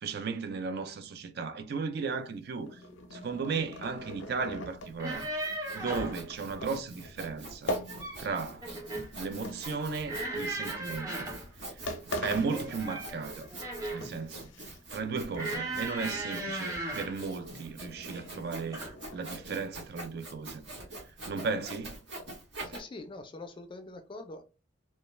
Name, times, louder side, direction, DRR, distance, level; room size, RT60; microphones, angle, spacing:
voice 1, 0.0-2.8 3.1-5.3 5.7-7.8 8.2-8.7 9.1-11.3 12.1-13.5 13.9-20.6 21.3-22.0 22.7-22.8, right 4 dB, 55° right, 0.4 m, -35 dB
sound 1, 2.5-8.6 8.8-10.3 11.0-11.2 11.6-11.7 11.9-13.5 13.8-15.1 15.3-15.9 16.3-16.4 16.7-19.2, left 1 dB, 85° left, 0.5 m, -42 dB
Sawing, 4.8-22.8, right 2 dB, 70° right, 1.0 m, -45 dB
sound 2, 4.9-6.2 7.7-8.3 8.6-9.1 10.1-11.5 12.5-14.1 15.3-17.2 18.1-18.4 18.7-18.9, right 2 dB, 20° right, 0.8 m, -37 dB
voice 2, 22.7-24.4, left 2 dB, 25° left, 0.3 m, -44 dB
2.3 x 2.1 x 3.0 m
head